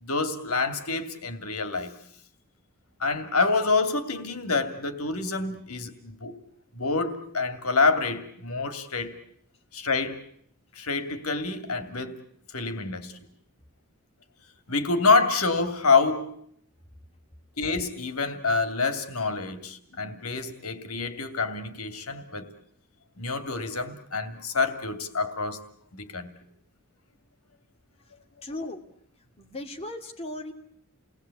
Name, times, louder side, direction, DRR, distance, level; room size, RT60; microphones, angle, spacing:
voice 1, 0.0-1.9 3.0-6.3 6.8-9.2 9.7-10.2 10.8-12.2 12.5-13.1 14.7-16.4 17.6-22.5 23.2-25.6 25.9-26.3, left 4 dB, 85° left, 2.6 m, -27 dB
voice 2, 28.4-28.9 29.4-30.5, left 1 dB, 25° left, 2.5 m, -37 dB
30.0 x 19.5 x 8.5 m
head